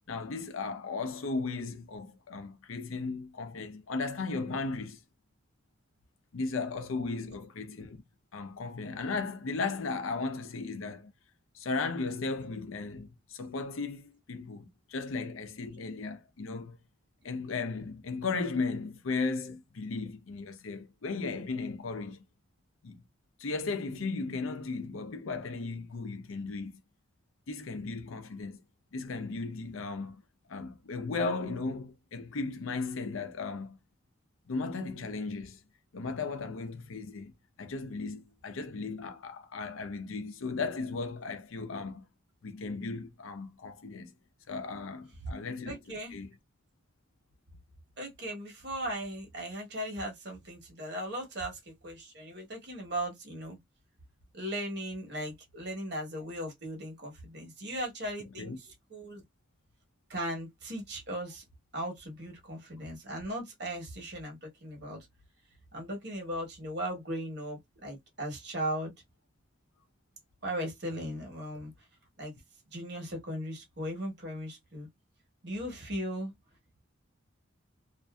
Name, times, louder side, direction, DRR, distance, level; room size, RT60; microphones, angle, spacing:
voice 1, 0.1-5.0 6.3-8.0 8.3-11.1 11.5-16.8 17.2-22.2 22.8-23.0 23.4-26.8 27.5-28.6 28.9-30.2 30.5-33.8 34.5-35.6 35.9-37.3 37.6-42.0 42.4-44.1 44.5-45.8 46.1-46.3 58.4-58.6, left 4 dB, 85° left, 0.6 m, -36 dB
voice 2, 45.7-46.3 48.0-53.6 54.3-59.2 60.1-61.4 61.7-65.1 65.7-68.9 70.4-71.7 72.2-72.3 72.7-74.9 75.4-76.3, right 1 dB, 55° right, 1.1 m, -37 dB
2.6 x 2.5 x 2.3 m
head